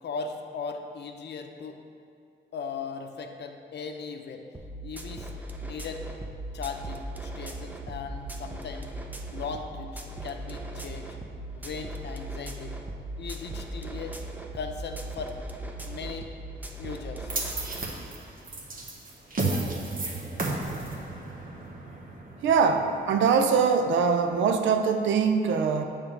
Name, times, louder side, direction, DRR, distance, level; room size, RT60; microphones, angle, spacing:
voice 1, 0.0-1.8 2.5-4.5 4.8-5.3 5.6-6.0 6.5-8.9 9.3-11.1 11.6-12.8 13.2-14.2 14.5-15.4 15.8-16.3 16.8-17.3, left 5 dB, 65° left, 5 dB, 0.6 m, -38 dB
sound 1, 4.5-17.9, right 2 dB, 10° right, 0.6 m, -38 dB
sound 2, 17.3-23.6, right 2 dB, 45° right, 1.1 m, -33 dB
voice 2, 22.4-25.8, right 5 dB, 85° right, 6 dB, 0.5 m, -23 dB
6.9 x 3.5 x 5.5 m, 2.4 s
cardioid pair, 70°, 19 cm